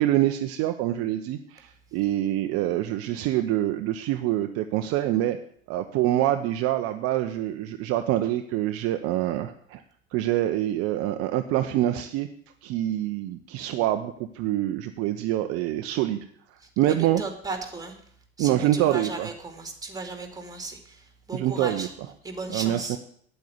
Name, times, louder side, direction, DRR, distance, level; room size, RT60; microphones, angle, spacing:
voice 1, 0.0-5.4 5.7-9.8 10.1-12.3 12.6-16.2 16.8-17.2 18.4-19.3 21.3-21.9 22.5-23.0, right 13 dB, 45° right, 7 dB, 0.8 m, -25 dB
voice 2, 16.8-17.9 18.4-21.9 22.2-23.0, right 3 dB, 10° right, 6 dB, 2.6 m, -35 dB
9.3 x 8.5 x 8.1 m, 0.64 s
figure-of-eight pair, 75°, 32 cm